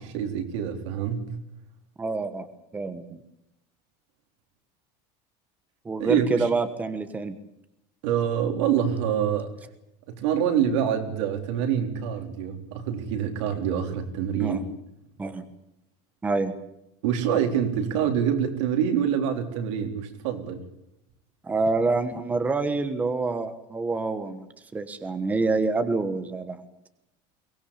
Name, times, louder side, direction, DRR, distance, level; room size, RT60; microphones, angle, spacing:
voice 1, 0.0-1.3 6.0-6.5 8.0-9.5 10.1-14.6 17.0-20.6, right 8 dB, 85° right, 5 dB, 4.0 m, -26 dB
voice 2, 2.0-3.2 5.8-7.4 14.4-14.6 15.2-15.4 16.2-16.6 21.4-24.5 24.7-26.6, right 3 dB, 10° right, 10 dB, 1.2 m, -27 dB
23.0 x 19.0 x 8.5 m, 0.83 s
cardioid pair, 180°, 15 cm